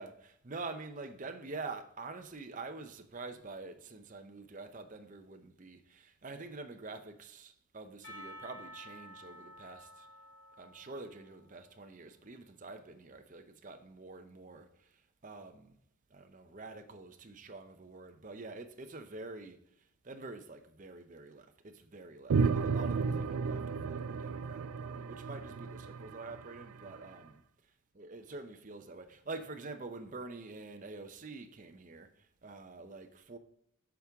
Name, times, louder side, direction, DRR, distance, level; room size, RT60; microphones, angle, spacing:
voice 1, 0.0-10.1 10.6-15.8 16.1-27.4 27.9-33.4, right 3 dB, 35° right, 0.6 m, -46 dB
Percussion, 8.0-11.9, equal, 65° left, 3.0 m, -52 dB
sound 1, 22.3-27.0, right 5 dB, 75° right, 0.4 m, -33 dB
8.4 x 6.0 x 3.5 m
head